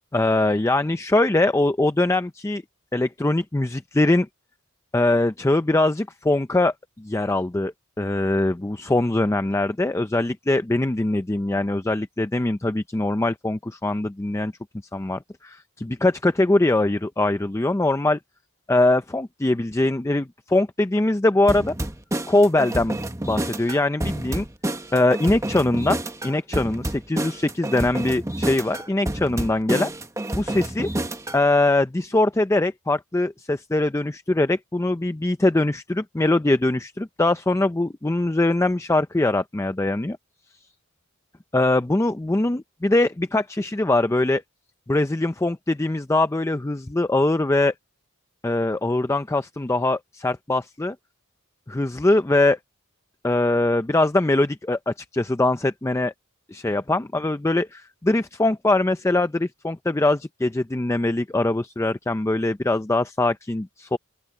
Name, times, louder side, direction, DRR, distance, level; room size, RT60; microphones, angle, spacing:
voice 1, 0.1-2.6 2.9-4.3 4.9-14.5 14.9-18.2 18.7-21.8 22.3-23.0 23.2-24.5 24.9-29.9 30.3-30.9 31.3-40.2 41.5-44.4 44.9-47.7 48.4-51.0 51.7-52.6 53.2-56.1 56.5-64.0, left 2 dB, 15° left, 0.5 m, -22 dB
sound 1, 21.5-31.4, right 1 dB, 15° right, 1.1 m, -29 dB
open air
head